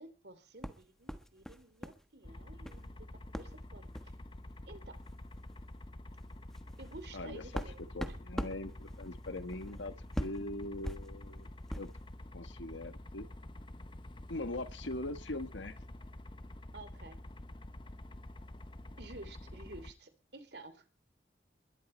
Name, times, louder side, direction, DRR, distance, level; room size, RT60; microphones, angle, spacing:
voice 1, 0.0-3.0 3.2-3.9 4.7-5.0 6.8-8.2 16.7-17.2 19.0-20.9, right 2 dB, 65° right, 11 dB, 3.0 m, -52 dB
sound 1, 0.6-2.0 2.3-2.9 3.3-3.6 3.9-4.2 5.0-5.1 5.5-5.7 6.1-12.0, equal, 5° left, 1.3 m, -42 dB
sound 2, 2.2-19.9, left 1 dB, 25° left, 0.8 m, -48 dB
voice 2, 7.1-7.6 7.9-11.5 11.7-11.9 12.3-13.3 14.3-15.8, left 2 dB, 90° left, 11 dB, 1.5 m, -41 dB
22.0 x 12.5 x 4.4 m, 0.35 s
head